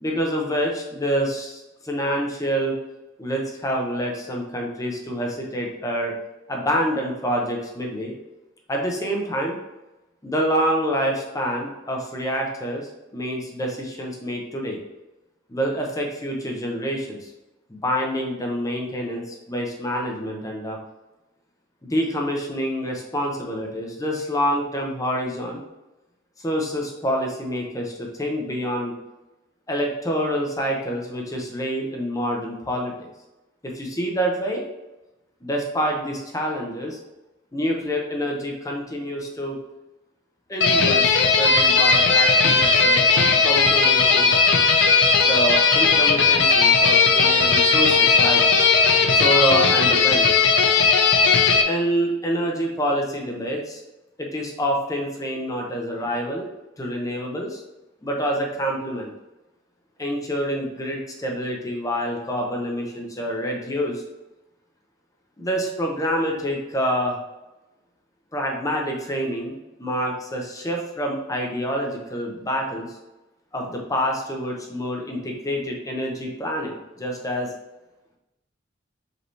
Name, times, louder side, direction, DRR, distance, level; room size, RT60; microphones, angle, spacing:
voice 1, 0.0-2.8 3.2-6.1 6.5-8.1 8.7-9.6 10.2-14.8 15.5-17.2 17.7-20.8 21.8-25.6 26.4-28.9 29.7-32.9 33.6-34.7 35.4-37.0 37.5-39.6 40.5-43.0 43.4-44.3 45.2-48.4 49.1-50.3 51.7-53.8 54.2-56.5 56.8-57.6 58.0-59.1 60.0-64.0 65.4-67.2 68.3-72.9 73.5-77.5, equal, 20° left, 0 dB, 0.7 m, -27 dB
sound 1, 40.6-51.6, left 4 dB, 65° left, 0.5 m, -17 dB
5.1 x 2.9 x 3.2 m, 0.99 s
head